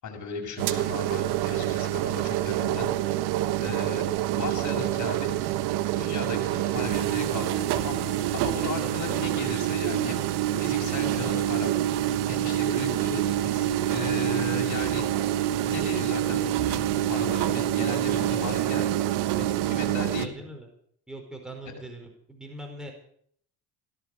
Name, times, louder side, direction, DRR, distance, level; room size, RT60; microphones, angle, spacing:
voice 1, 0.0-2.9 3.6-4.1 4.3-5.3 6.0-10.2 10.6-11.7 12.3-15.0 15.7-18.8 19.4-20.3, left 4 dB, 50° left, 2 dB, 6.8 m, -36 dB
sound 1, 0.6-20.3, right 13 dB, 80° right, 1.3 m, -26 dB
voice 2, 20.2-20.7 21.1-22.9, right 1 dB, ahead, 2 dB, 4.9 m, -41 dB
17.0 x 13.0 x 6.6 m, 0.63 s
supercardioid pair, 90°, 39 cm